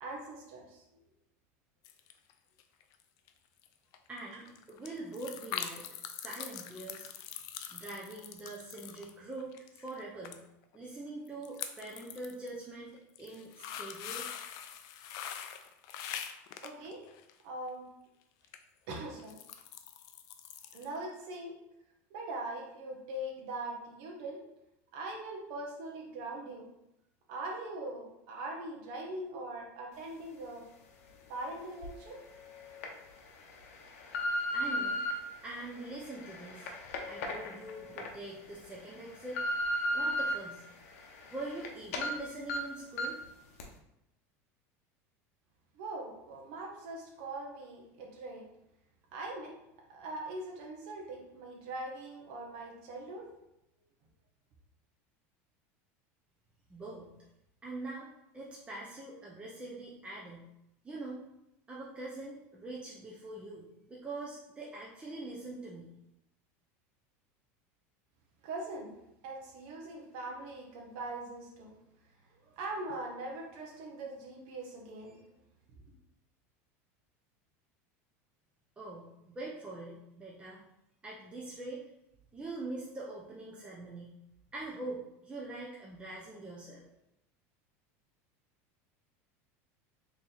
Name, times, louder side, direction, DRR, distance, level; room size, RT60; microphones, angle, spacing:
voice 1, 0.0-0.8 16.6-17.0 17.4-17.9 18.9-19.4 20.7-21.5 22.1-24.4 24.9-26.7 27.3-30.6 31.3-32.2 45.7-48.4 49.1-49.5 49.9-53.2 68.4-68.9 69.2-71.7 72.4-75.2, right 2 dB, 65° right, -1 dB, 0.9 m, -41 dB
sound 1, 1.8-2.3 2.6-3.0 3.3-3.4 3.6-3.7 3.9-10.0 10.2-10.4 10.6-10.8 11.3-12.5 13.0-17.4 18.4-18.6 19.0-21.0 21.2-21.3, left 9 dB, 55° left, 0.4 m, -43 dB
voice 2, 4.1-7.1 7.7-10.4 10.7-12.9 13.2-14.3 34.5-35.0 35.4-36.7 37.1-39.4 39.9-40.6 41.3-43.2 56.7-57.1 57.6-60.5 60.8-61.2 61.7-65.9 78.8-80.6 81.0-81.8 82.3-84.1 84.5-86.8, right 2 dB, 15° right, -5 dB, 0.6 m, -43 dB
sound 2, 31.8-31.9 32.6-32.9 33.5-35.1 35.8-38.1 38.5-38.6 39.0-40.3 40.8-41.7 41.9-42.1 42.5-42.6 43.0-43.2 43.6-43.7, left 1 dB, 85° left, 0.6 m, -34 dB
3.1 x 2.6 x 3.8 m, 0.85 s
supercardioid pair, 120°, 8 cm